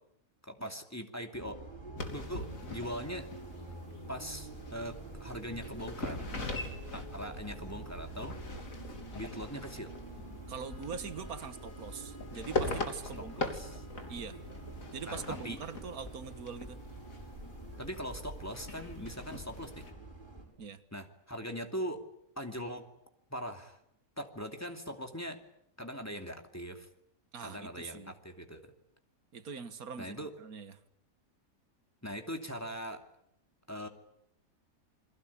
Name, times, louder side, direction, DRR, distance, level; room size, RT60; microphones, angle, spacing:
voice 1, 0.4-1.6 2.1-3.2 4.1-6.4 6.9-8.6 9.1-9.9 13.4-13.8 15.1-15.6 17.8-19.8 20.9-22.0 22.4-22.8 23.3-23.8 24.2-25.4 25.8-26.9 27.4-28.7 30.0-30.3 32.0-33.0 33.7-33.9, equal, 10° left, 5 dB, 2.6 m, -41 dB
Bus, 1.3-20.5, right 2 dB, 35° right, 7.1 m, -47 dB
sound 1, 2.0-19.9, left 3 dB, 70° left, 3.5 m, -42 dB
voice 2, 10.5-13.5 14.1-14.4 14.9-16.8 20.6-20.8 27.3-28.2 29.3-30.8, right 6 dB, 85° right, 11 dB, 1.9 m, -43 dB
Wind instrument woodwind instrument, 10.6-15.1, equal, 45° left, 2.4 m, -58 dB
29.0 x 22.5 x 8.5 m, 0.76 s
omnidirectional pair, 1.5 m